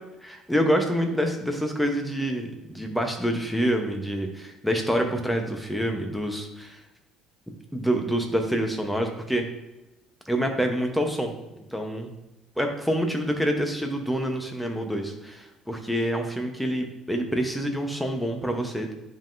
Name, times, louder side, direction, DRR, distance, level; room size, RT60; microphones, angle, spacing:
voice 1, 0.2-6.8 7.7-9.5 10.3-12.1 12.6-18.9, equal, ahead, 4 dB, 0.8 m, -27 dB
9.9 x 3.7 x 2.6 m, 0.97 s
cardioid pair, 120°, 0 cm